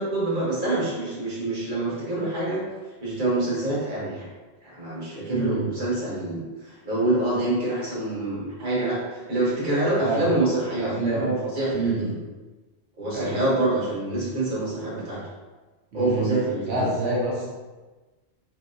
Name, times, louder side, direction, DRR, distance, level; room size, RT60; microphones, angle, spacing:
voice 1, 0.0-2.6 3.0-4.3 4.6-12.2 13.0-15.2 15.9-16.9, right 2 dB, 50° right, -7 dB, 1.2 m, -26 dB
voice 2, 5.3-5.6 10.0-10.2 10.8-11.3 11.7-12.0 13.1-13.4 15.9-16.3 16.6-17.5, right 2 dB, 75° right, -6 dB, 1.2 m, -26 dB
3.0 x 2.8 x 2.6 m, 1.2 s
omnidirectional pair, 1.1 m